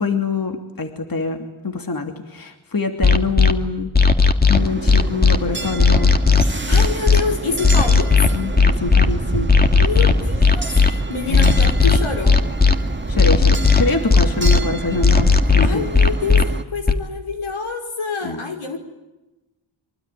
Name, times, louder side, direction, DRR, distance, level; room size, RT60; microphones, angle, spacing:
voice 1, 0.0-3.9 4.5-6.1 8.3-9.6 11.3-11.6 13.1-15.9 18.2-18.4, left 4 dB, 45° left, 5 dB, 2.9 m, -25 dB
sound 1, 3.0-3.5 3.9-5.4 5.8-7.2 7.6-9.1 9.5-10.9 11.3-12.7 13.2-14.6 15.0-16.4 16.9-17.0, left 4 dB, 20° left, 2.4 m, -14 dB
sound 2, 4.5-16.6, right 2 dB, 25° right, 1.8 m, -28 dB
voice 2, 6.4-8.2 9.8-12.4 15.6-18.8, left 4 dB, 75° left, 5 dB, 5.2 m, -27 dB
25.0 x 24.5 x 9.3 m, 1.0 s
cardioid pair, 65°, 49 cm